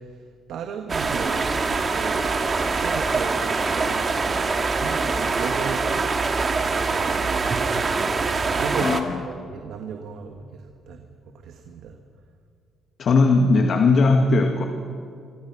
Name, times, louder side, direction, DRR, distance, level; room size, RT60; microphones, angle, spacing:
voice 1, 0.5-2.3 2.8-6.0 6.5-7.8 8.5-9.0 9.4-10.5 10.9-11.1 11.4-12.0, right 7 dB, 80° right, 4 dB, 1.7 m, -35 dB
sound 1, 0.9-9.0, right 4 dB, 35° right, 2.4 m, -24 dB
voice 2, 8.8-9.2 13.0-14.7, left 3 dB, 55° left, 4 dB, 2.1 m, -18 dB
26.5 x 25.5 x 6.2 m, 2.4 s
cardioid pair, 90°, 0 cm